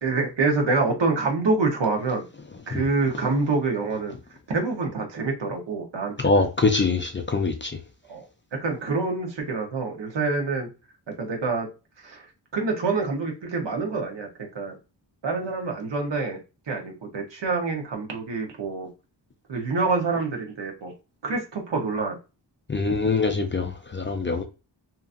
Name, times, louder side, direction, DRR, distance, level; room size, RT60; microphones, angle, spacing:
voice 1, 0.0-2.2 2.7-4.1 4.5-6.5 8.1-8.2 8.5-10.7 11.2-11.7 12.0-12.2 12.5-14.3 14.5-14.7 15.2-16.4 16.7-18.9 19.5-20.9 21.2-22.2, right 3 dB, 70° right, 1.0 m, -26 dB
voice 2, 6.2-7.7 22.7-24.4, left 3 dB, 30° left, 0.4 m, -23 dB
2.9 x 2.5 x 2.4 m
wide cardioid pair, 115°, 44 cm